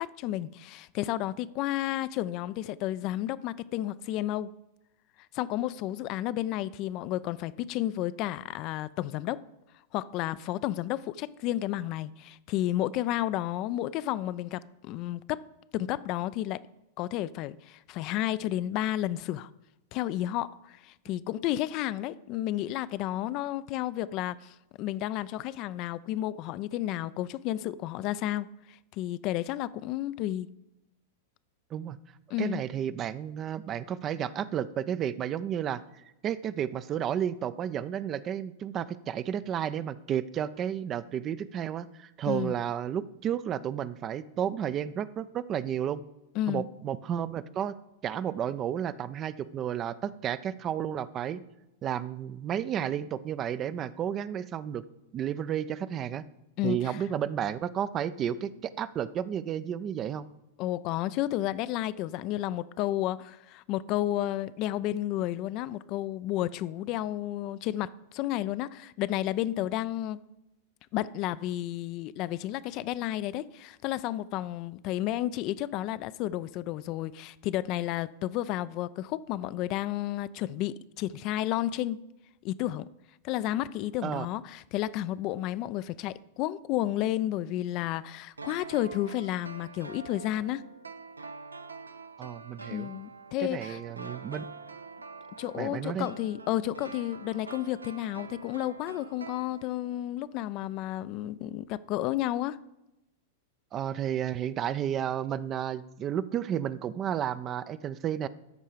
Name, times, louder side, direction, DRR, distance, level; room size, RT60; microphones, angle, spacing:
voice 1, 0.0-4.5 5.3-9.4 9.9-15.4 15.7-16.6 17.0-19.5 19.9-30.5 32.3-32.6 42.2-42.5 46.4-46.6 56.6-57.0 60.6-70.2 70.9-82.0 82.4-82.9 83.2-90.7 92.7-93.8 95.4-102.6, left 14 dB, 45° left, 0.3 m, -32 dB
voice 2, 32.4-35.8 36.2-46.0 46.5-47.7 48.0-51.4 51.8-54.8 55.1-56.2 56.6-58.5 58.8-60.3 84.0-84.3 92.2-92.9 93.4-94.4 95.5-96.1 103.7-108.3, right 9 dB, 30° right, 0.4 m, -32 dB
sound 1, 88.4-100.0 100.3-100.4, right 4 dB, 85° right, 0.5 m, -46 dB
13.0 x 4.5 x 5.0 m
figure-of-eight pair, 95°, 0 cm